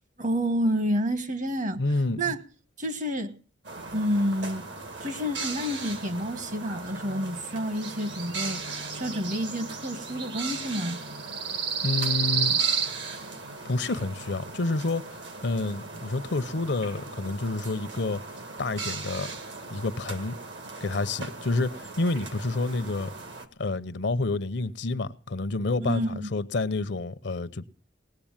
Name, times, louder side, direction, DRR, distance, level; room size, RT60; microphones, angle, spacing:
voice 1, 0.2-1.8 2.2-2.4 2.8-3.3 3.9-4.7 5.0-8.6 8.9-11.0 25.8-26.3, equal, 40° right, 1.2 m, -29 dB
voice 2, 1.8-2.3 11.8-12.6 13.6-15.0 15.4-18.2 18.6-19.3 19.7-20.4 20.8-23.1 23.6-27.7, left 2 dB, 65° left, 0.7 m, -29 dB
sound 1, 3.6-23.5, right 5 dB, 65° right, 1.8 m, -35 dB
19.0 x 7.8 x 8.8 m
head